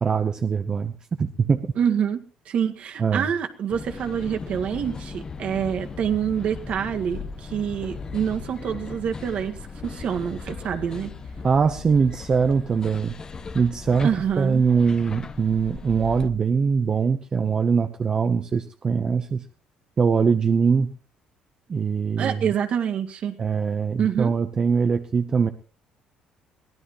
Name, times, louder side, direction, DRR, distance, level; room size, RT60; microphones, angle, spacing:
voice 1, 0.0-0.9 1.2-1.7 3.0-3.3 11.4-13.1 13.5-14.1 14.4-19.4 20.0-20.9 21.7-22.5 23.4-25.5, right 5 dB, 30° right, 8 dB, 0.9 m, -22 dB
voice 2, 1.8-9.6 9.8-11.1 14.0-14.6 22.2-23.4 24.0-24.3, right 8 dB, 50° right, 5 dB, 1.8 m, -26 dB
sound 1, 3.7-16.3, left 5 dB, 25° left, 1.1 m, -38 dB
23.0 x 16.5 x 3.1 m, 0.37 s
cardioid pair, 130°, 3 cm